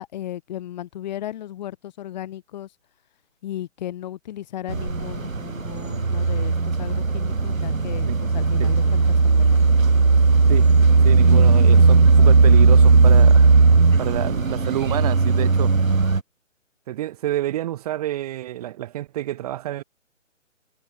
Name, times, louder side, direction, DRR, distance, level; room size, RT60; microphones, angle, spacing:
voice 1, 0.0-2.7 3.4-9.8, left 12 dB, 35° left, 7.4 m, -35 dB
sound 1, 4.7-16.2, right 4 dB, 85° right, 5.1 m, -16 dB
voice 2, 11.0-13.4 14.0-15.7 16.9-19.8, right 13 dB, 30° right, 3.2 m, -28 dB
hypercardioid pair, 155°, 39 cm